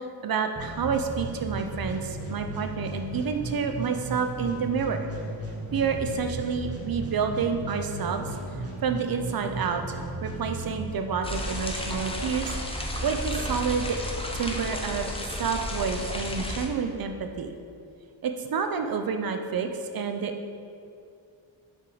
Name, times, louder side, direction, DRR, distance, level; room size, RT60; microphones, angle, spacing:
voice 1, 0.0-5.1 5.7-8.4 8.8-10.0 10.2-14.0 14.3-15.1 15.4-17.5 18.2-20.3, right 6 dB, 50° right, 6 dB, 0.5 m, -29 dB
sound 1, 0.5-11.5, right 2 dB, 30° right, 0.9 m, -35 dB
sound 2, 11.2-16.7, left 1 dB, 10° left, 0.5 m, -32 dB
5.7 x 4.6 x 3.9 m, 2.5 s
wide cardioid pair, 120°, 48 cm